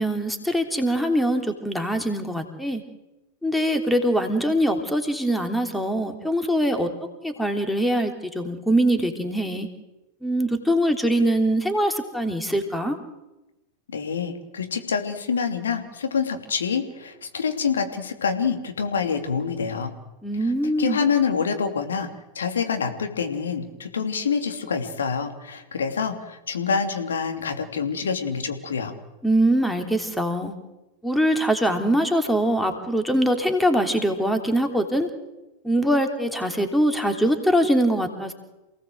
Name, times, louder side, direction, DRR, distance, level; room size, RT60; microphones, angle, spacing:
voice 1, 0.0-2.8 3.4-6.9 7.2-9.7 10.2-13.0 20.2-21.0 29.2-30.5 31.0-35.1 35.6-38.3, equal, 5° left, 6 dB, 3.1 m, -23 dB
voice 2, 13.9-19.9 20.4-22.1 22.3-28.9, left 6 dB, 70° left, 6 dB, 3.0 m, -26 dB
28.5 x 18.0 x 7.9 m, 1.0 s
figure-of-eight pair, 90°, 0 cm